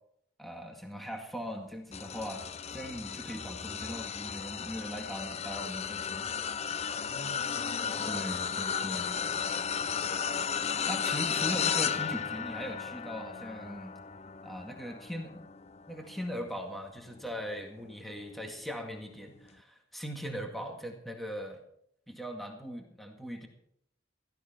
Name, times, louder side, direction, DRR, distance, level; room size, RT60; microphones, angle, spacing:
voice 1, 0.4-6.3 8.1-9.4 10.9-14.0 14.4-15.4 15.9-21.6 22.1-23.5, equal, ahead, 2 dB, 1.9 m, -40 dB
sound 1, 1.9-17.4 17.9-18.2 19.5-19.6, left 7 dB, 35° left, 0.5 m, -34 dB
voice 2, 6.9-8.3 8.7-10.1, left 1 dB, 90° left, 2 dB, 5.3 m, -50 dB
16.0 x 14.5 x 4.4 m, 0.71 s
head